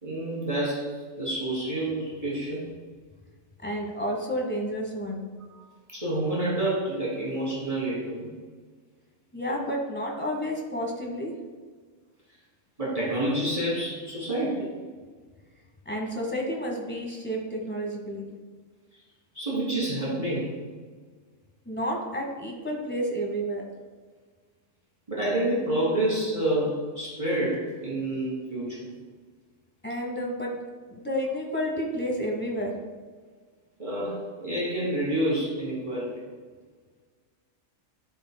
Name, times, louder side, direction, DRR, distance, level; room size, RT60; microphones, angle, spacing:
voice 1, 0.0-2.7 5.5-8.3 12.8-14.7 19.3-20.6 25.1-28.9 33.8-36.2, right 1 dB, 25° right, -7 dB, 1.7 m, -28 dB
voice 2, 3.6-5.3 9.3-11.3 15.8-18.3 21.7-23.6 29.8-30.6 30.9-32.7, equal, 10° left, 0 dB, 0.9 m, -30 dB
11.5 x 4.2 x 2.2 m, 1.5 s
omnidirectional pair, 1.4 m